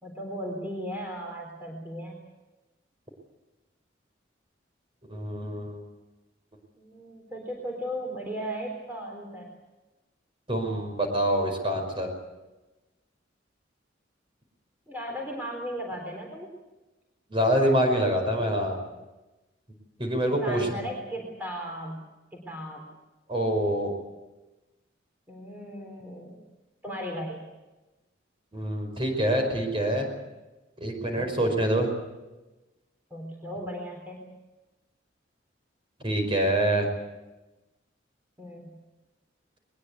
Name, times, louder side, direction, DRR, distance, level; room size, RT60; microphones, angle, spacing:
voice 1, 0.0-2.3 6.8-9.5 14.9-16.5 20.4-22.9 25.3-26.4 26.8-27.4 31.2-31.4 33.1-34.4 38.4-38.8, equal, 10° right, 0 dB, 3.7 m, -36 dB
voice 2, 5.1-5.8 10.5-12.1 17.3-18.8 20.0-20.7 23.3-23.9 28.5-30.0 30.8-31.9 36.0-36.9, right 1 dB, 30° right, 4 dB, 5.1 m, -25 dB
21.5 x 21.0 x 8.3 m, 1.1 s
head